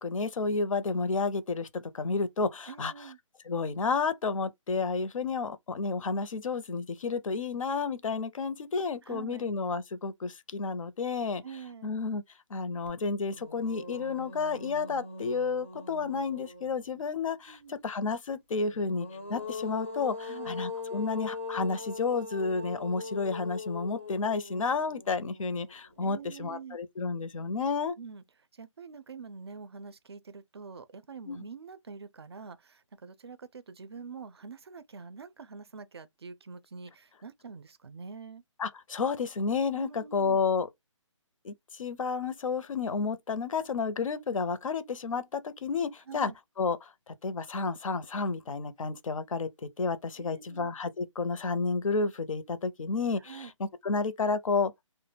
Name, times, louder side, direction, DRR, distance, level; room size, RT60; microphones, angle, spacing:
voice 1, 0.0-2.9 3.5-11.4 11.8-12.2 12.5-28.0 31.3-31.4 38.6-40.7 41.4-46.3 46.6-54.7, left 4 dB, 80° left, 0.5 m, -31 dB
voice 2, 2.7-3.2 9.0-9.5 11.4-11.9 17.5-17.7 20.2-20.6 26.0-26.8 28.0-28.2 28.5-38.4 39.8-40.4 46.1-46.4 50.2-50.7 53.2-53.5, right 5 dB, 50° right, 0.4 m, -45 dB
sound 1, 12.9-13.0 13.3-17.0 18.7-25.9, left 4 dB, 25° left, 0.4 m, -41 dB
2.2 x 2.0 x 3.2 m
hypercardioid pair, 180°, 17 cm